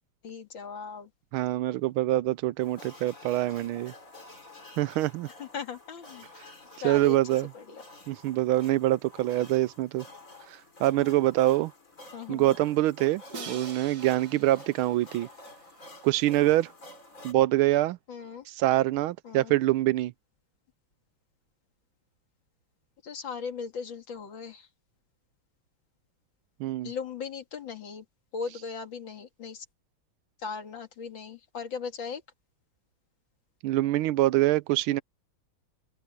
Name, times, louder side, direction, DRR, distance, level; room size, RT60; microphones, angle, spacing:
voice 1, 0.2-1.1 5.4-6.3 6.8-7.2 7.5-7.8 12.1-12.5 13.3-13.7 18.1-18.5 19.2-19.6 23.0-24.7 26.8-28.0 28.3-29.6 30.4-32.2, left 5 dB, 65° left, 2.7 m, -38 dB
voice 2, 1.3-3.9 4.8-5.3 6.8-7.5 8.1-10.0 10.5-11.7 12.3-15.3 16.0-16.7 17.2-18.0 18.5-20.1 26.6-26.9 33.6-35.0, right 16 dB, 80° right, 1.4 m, -25 dB
sound 1, 2.6-17.3, left 2 dB, 40° left, 4.5 m, -50 dB
Crash cymbal, 13.3-16.3, right 5 dB, 50° right, 2.0 m, -45 dB
open air
omnidirectional pair, 2.3 m